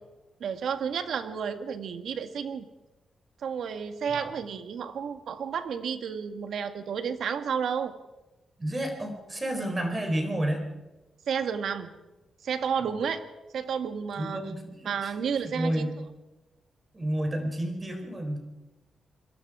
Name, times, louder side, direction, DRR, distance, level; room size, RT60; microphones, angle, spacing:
voice 1, 0.4-2.7 3.4-7.9 11.3-11.9 12.4-13.2 13.5-14.4 14.9-15.9, right 7 dB, 75° right, 9 dB, 1.8 m, -31 dB
voice 2, 8.6-10.6 12.8-12.9 14.2-15.9 16.9-18.4, right 1 dB, 20° right, 4 dB, 4.1 m, -31 dB
27.5 x 22.5 x 5.0 m, 1.0 s
wide cardioid pair, 145°, 0 cm